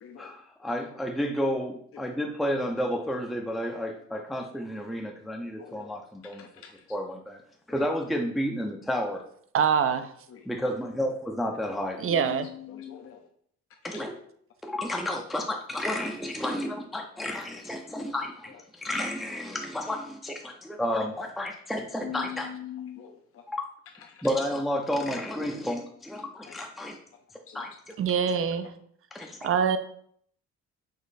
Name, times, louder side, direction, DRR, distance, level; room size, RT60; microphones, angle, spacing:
voice 1, 0.2-6.4 6.9-7.4 7.7-9.2 10.5-12.0 13.8-14.2 14.6-20.3 20.7-22.5 23.5-23.6 24.2-27.0 27.5-27.9 29.1-29.4, equal, ahead, 1 dB, 0.5 m, -31 dB
voice 2, 5.6-5.9 6.4-6.5 12.1-13.2 22.0-23.1 27.5-27.6, left 9 dB, 45° left, 3 dB, 0.6 m, -40 dB
voice 3, 9.5-10.1 12.0-12.5 28.0-28.7 29.4-29.8, right 7 dB, 45° right, 11 dB, 0.5 m, -24 dB
5.2 x 2.4 x 4.0 m, 0.64 s
cardioid pair, 90°, 30 cm